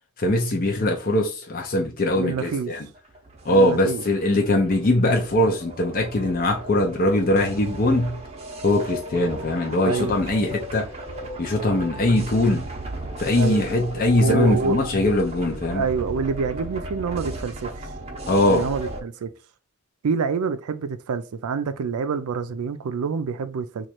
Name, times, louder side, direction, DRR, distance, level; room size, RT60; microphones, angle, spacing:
voice 1, 0.2-2.8 3.5-8.2 8.6-10.9 11.4-12.6 13.2-15.8 18.3-18.6, left 1 dB, 40° left, 0.6 m, -21 dB
voice 2, 2.1-2.7 3.5-4.0 9.8-10.2 13.4-13.6 14.2-14.9 15.7-17.9 18.4-19.3 20.0-23.9, right 5 dB, 80° right, 0.4 m, -27 dB
sound 1, 2.9-19.0, right 1 dB, 30° right, 0.7 m, -36 dB
3.0 x 2.4 x 4.3 m
head